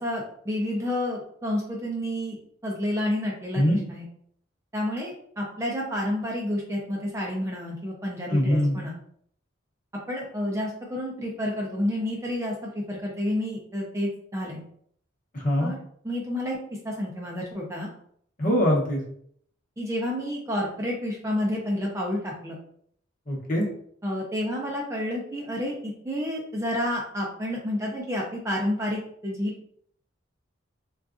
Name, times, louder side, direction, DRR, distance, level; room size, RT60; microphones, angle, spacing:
voice 1, 0.0-2.4 2.6-4.0 4.7-8.9 10.1-14.6 15.6-16.6 16.8-17.9 19.8-22.6 24.0-29.5, left 1 dB, 15° right, -2 dB, 0.4 m, -30 dB
voice 2, 8.3-8.8 15.3-15.7 18.4-19.0 23.3-23.7, equal, 45° left, -2 dB, 0.8 m, -22 dB
3.7 x 2.3 x 2.5 m, 0.65 s
head